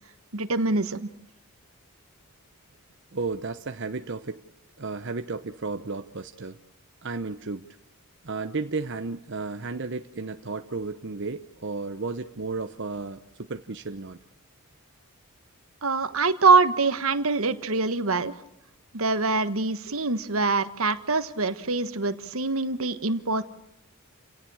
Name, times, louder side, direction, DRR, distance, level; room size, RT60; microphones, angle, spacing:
voice 1, 0.3-1.1 15.8-18.3 18.9-23.4, right 3 dB, 70° right, 11 dB, 1.5 m, -24 dB
voice 2, 3.1-4.4 4.8-6.6 7.0-7.6 8.2-13.2 13.5-14.2 19.9-20.0, right 3 dB, 55° right, 7 dB, 0.9 m, -33 dB
29.0 x 17.5 x 6.3 m, 0.82 s
head